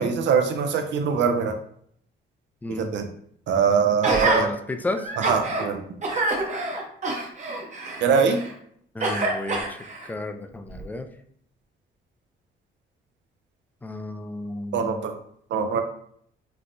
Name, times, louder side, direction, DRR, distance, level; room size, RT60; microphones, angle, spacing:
voice 1, 0.0-1.6 2.7-3.1 3.5-4.5 5.2-5.8 8.0-8.4 14.7-15.1 15.5-15.8, right 6 dB, 65° right, 6 dB, 0.5 m, -22 dB
voice 2, 2.6-2.9 4.1-5.1 8.9-11.1 13.8-15.0, left 2 dB, 10° left, 7 dB, 0.3 m, -32 dB
Gasp, 4.0-4.4 5.0-5.6 6.0-8.5 9.0-10.1 10.7-10.8, right 2 dB, 35° right, 0.8 m, -27 dB
4.4 x 2.1 x 2.6 m, 0.65 s
cardioid pair, 90°, 20 cm